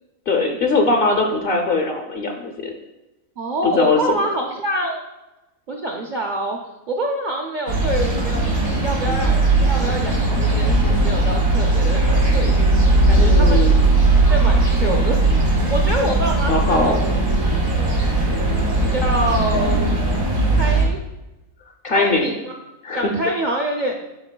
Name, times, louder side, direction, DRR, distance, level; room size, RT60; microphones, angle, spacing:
voice 1, 0.3-2.7 3.6-4.2 13.2-13.8 16.5-17.0 18.4-18.5 21.8-22.3 22.8-23.1, left 3 dB, 55° left, 3 dB, 0.6 m, -20 dB
voice 2, 3.4-5.0 5.7-6.6 6.9-8.4 8.8-13.7 14.3-17.0 18.4-19.9 20.6-21.0 21.9-22.5 22.9-24.0, right 1 dB, 55° right, 0 dB, 0.5 m, -26 dB
sound 1, 7.7-20.8, right 2 dB, 85° right, 2.3 m, -18 dB
11.0 x 3.8 x 2.2 m, 0.99 s
omnidirectional pair, 1.4 m